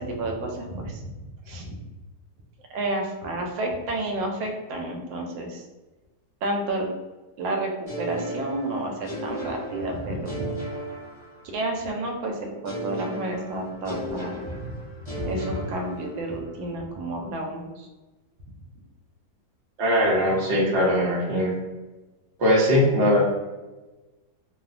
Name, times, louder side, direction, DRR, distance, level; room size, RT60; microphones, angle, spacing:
voice 1, 0.0-1.7 2.7-5.7 6.4-6.9 7.4-10.5 11.5-14.7 15.1-17.9, right 1 dB, 85° right, 1 dB, 1.3 m, -30 dB
sound 1, 7.9-11.8 12.6-16.5, right 1 dB, 40° left, 0.4 m, -36 dB
voice 2, 19.8-21.5 22.4-23.2, equal, 55° right, -4 dB, 0.7 m, -20 dB
3.1 x 2.0 x 2.4 m, 1.2 s
omnidirectional pair, 2.0 m